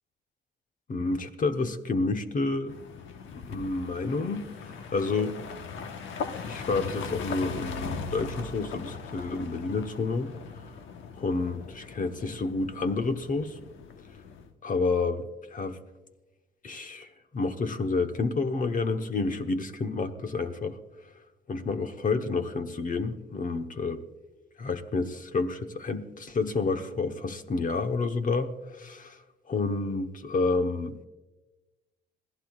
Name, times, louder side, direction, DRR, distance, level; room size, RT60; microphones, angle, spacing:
voice 1, 0.9-2.8 3.3-5.4 6.4-10.3 11.2-13.6 14.6-15.8 16.6-20.8 21.5-24.0 24.6-29.2 29.5-31.0, left 3 dB, 40° left, 1.1 m, -29 dB
sound 1, 2.7-14.5, left 5 dB, 80° left, 1.1 m, -39 dB
26.5 x 15.5 x 2.4 m
cardioid pair, 90°, 20 cm